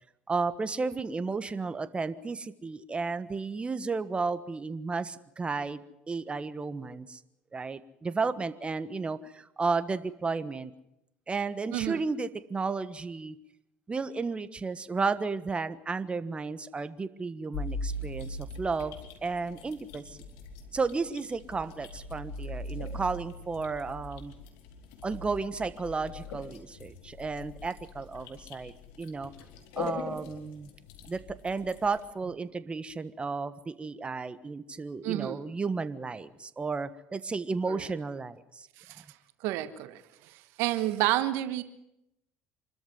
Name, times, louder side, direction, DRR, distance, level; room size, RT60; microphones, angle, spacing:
voice 1, 0.3-7.2 7.5-10.7 11.3-13.4 13.9-20.0 20.7-24.3 25.0-28.7 29.0-29.3 29.8-30.7 31.1-38.7, right 4 dB, 25° right, 13 dB, 1.4 m, -33 dB
voice 2, 11.7-12.0 35.0-35.4 37.7-37.9 38.8-39.0 39.4-40.0 40.6-41.6, right 15 dB, 75° right, 12 dB, 1.3 m, -29 dB
sound 1, 17.5-32.1, left 2 dB, 80° left, 2.8 m, -41 dB
26.0 x 13.5 x 9.4 m, 0.84 s
hypercardioid pair, 70°, 4 cm